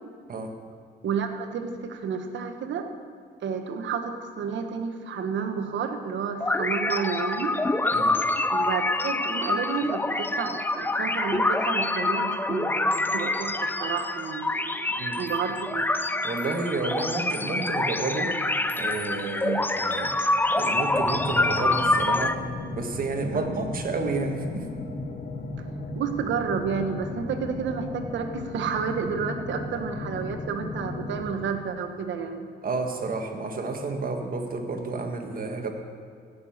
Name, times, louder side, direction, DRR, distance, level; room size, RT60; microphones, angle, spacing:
voice 1, 1.0-2.9 3.4-7.6 8.5-15.9 19.4-19.6 23.3-23.4 25.9-32.5, right 6 dB, 70° right, 6 dB, 1.3 m, -31 dB
sound 1, 6.4-22.3, left 2 dB, 10° left, 0.5 m, -26 dB
voice 2, 16.2-18.3 18.7-20.1 20.5-22.4 22.7-24.7 32.6-35.7, right 3 dB, 45° right, 4 dB, 1.7 m, -30 dB
sound 2, 20.9-31.4, left 2 dB, 45° left, 2.2 m, -36 dB
16.0 x 6.8 x 7.3 m, 2.2 s
cardioid pair, 90°, 20 cm